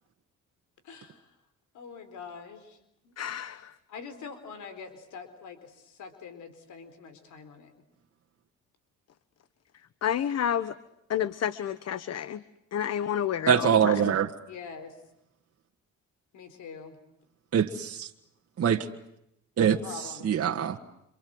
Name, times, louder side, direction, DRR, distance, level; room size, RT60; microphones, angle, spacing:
voice 1, 0.8-1.3 1.7-2.8 3.0-3.1 3.9-7.7 14.5-15.0 16.3-17.0 19.7-20.3, left 5 dB, 75° left, 10 dB, 4.4 m, -44 dB
voice 2, 3.2-3.7 10.0-10.8 11.1-12.4 12.7-14.1, left 9 dB, 55° left, 15 dB, 1.2 m, -30 dB
voice 3, 13.5-14.3 17.5-18.1 18.6-18.9 19.6-20.8, right 8 dB, 50° right, 3 dB, 1.9 m, -24 dB
28.0 x 27.0 x 7.9 m, 0.80 s
cardioid pair, 90°, 30 cm